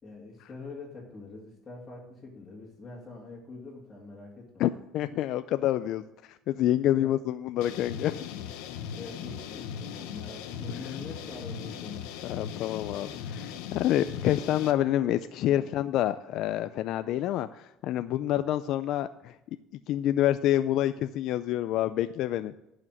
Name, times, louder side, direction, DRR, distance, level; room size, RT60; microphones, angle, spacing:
voice 1, 0.0-4.7 7.0-7.2 8.7-12.0 15.6-15.7, left 3 dB, 25° left, -6 dB, 2.3 m, -44 dB
voice 2, 4.6-6.0 6.3-8.3 12.2-19.3 19.9-22.5, left 12 dB, 60° left, 12 dB, 0.4 m, -27 dB
sound 1, 7.6-14.7, left 8 dB, 85° left, 0.8 m, -39 dB
11.0 x 5.0 x 7.8 m, 0.89 s
cardioid pair, 125°, 0 cm